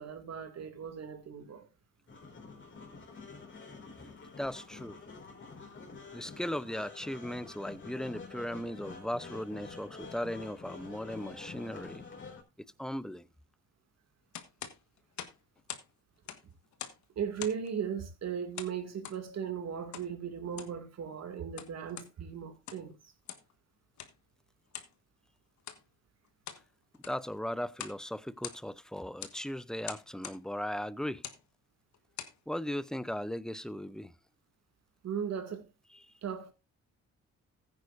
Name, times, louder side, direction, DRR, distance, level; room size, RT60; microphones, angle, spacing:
voice 1, 0.0-1.7 17.2-23.1 35.0-35.7 36.2-36.5, right 7 dB, 60° right, 2.3 m, -37 dB
sound 1, 2.1-12.4, left 4 dB, 40° left, 3.7 m, -48 dB
voice 2, 4.4-5.0 6.1-12.0 12.8-13.2 27.0-31.2 32.5-34.1 36.0-36.1, left 1 dB, ahead, 0.6 m, -37 dB
sound 2, 14.3-15.9 16.2-17.1 17.4-17.7 18.6-19.2 19.9-20.1 20.5-20.8 21.4-22.1 22.5-22.9 23.3-23.5 24.0-24.2 24.7-24.9 25.6-25.8 26.2-26.7 26.9-27.3 27.7-28.0 28.3-28.8 29.2-29.4 29.8-30.4 31.1-31.4 31.9-32.4, left 9 dB, 70° left, 1.5 m, -44 dB
15.0 x 9.7 x 2.6 m
cardioid pair, 90°, 30 cm